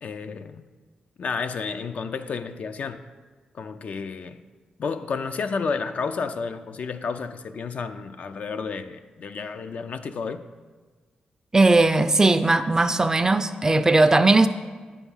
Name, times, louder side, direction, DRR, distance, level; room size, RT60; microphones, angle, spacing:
voice 1, 0.0-0.7 1.2-3.0 3.5-4.4 4.8-10.4, left 5 dB, 60° left, 9 dB, 0.4 m, -31 dB
voice 2, 11.5-14.5, right 2 dB, 20° right, 10 dB, 0.4 m, -18 dB
9.0 x 3.5 x 5.5 m, 1.4 s
cardioid pair, 70°, 3 cm